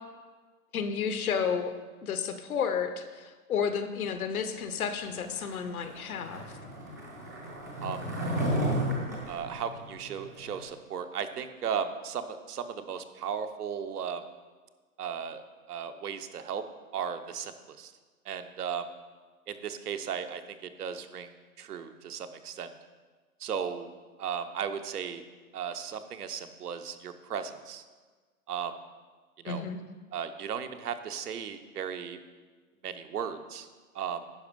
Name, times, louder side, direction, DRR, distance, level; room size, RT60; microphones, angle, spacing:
voice 1, 0.7-1.7 2.0-6.6 29.5-29.8, left 6 dB, 65° left, 9 dB, 1.0 m, -31 dB
Skateboard, 5.2-10.6, equal, 15° right, 0.4 m, -33 dB
voice 2, 9.3-14.2 15.0-15.4 15.7-16.6 16.9-17.9 18.3-18.9 19.5-21.3 21.6-22.7 23.4-23.9 24.2-25.2 25.5-27.8 28.5-28.7 29.4-29.6 30.1-32.2 32.8-33.7 33.9-34.2, right 7 dB, 80° right, 8 dB, 0.9 m, -36 dB
10.5 x 5.1 x 5.3 m, 1.4 s
hypercardioid pair, 160°, 46 cm